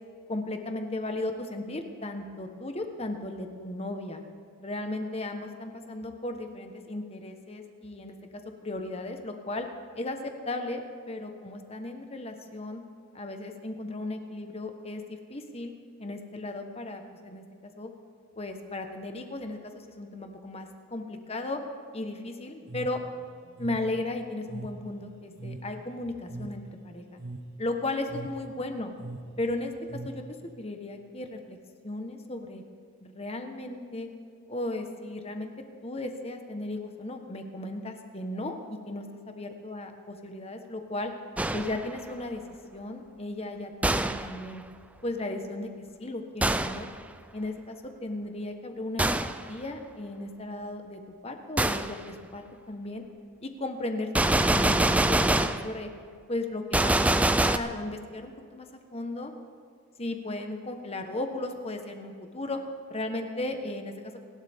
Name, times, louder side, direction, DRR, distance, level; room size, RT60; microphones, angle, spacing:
voice 1, 0.3-4.2 4.6-8.2 8.6-9.7 9.9-12.8 13.1-15.7 16.0-17.9 18.4-21.6 21.9-23.0 23.6-27.2 27.6-28.9 29.4-29.7 30.0-30.2 30.6-31.6 31.8-32.6 33.0-34.1 34.5-35.5 35.8-38.6 38.9-41.1 41.5-42.4 42.7-44.6 45.0-45.7 46.0-46.9 47.3-53.0 53.4-55.9 56.3-56.9 57.2-58.7 58.9-59.3 60.0-62.6 62.9-64.2, left 2 dB, 30° left, 5 dB, 1.3 m, -35 dB
sound 1, 22.6-30.5, right 2 dB, 50° right, 0.9 m, -42 dB
Gunshot gunfire, 41.4-41.9 43.8-44.4 46.4-46.9 49.0-49.4 51.6-51.9 54.1-55.7 56.7-57.6, right 1 dB, 5° right, 0.4 m, -24 dB
29.0 x 12.0 x 3.7 m, 2.2 s
head